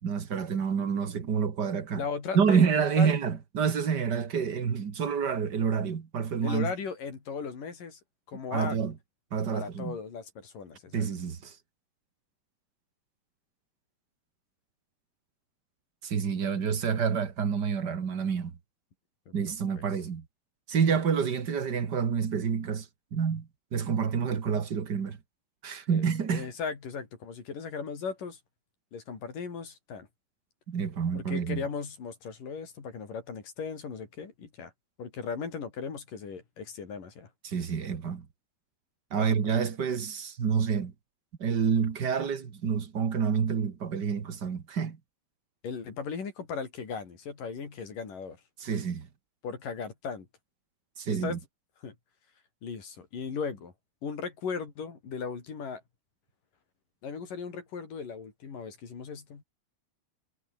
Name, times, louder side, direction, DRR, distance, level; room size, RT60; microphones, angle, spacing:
voice 1, 0.0-2.0 2.3-6.7 8.5-8.9 9.3-10.0 10.9-11.5 16.0-18.5 19.3-20.2 20.7-22.9 23.1-25.2 25.6-26.5 30.7-31.6 37.4-38.2 39.1-40.9 41.4-45.0 48.6-49.1 51.0-51.4, right 6 dB, 45° right, 1.3 m, -28 dB
voice 2, 1.9-2.7 3.0-3.1 6.4-8.0 8.3-8.8 9.5-11.1 19.3-19.4 25.9-26.0 26.3-28.4 28.9-30.1 31.1-34.7 35.0-37.3 39.1-39.2 45.6-48.4 49.4-50.3 51.1-51.4 51.8-52.0 52.6-53.7 54.0-55.8 57.0-59.4, left 5 dB, 55° left, 5.6 m, -37 dB
omnidirectional pair, 4.7 m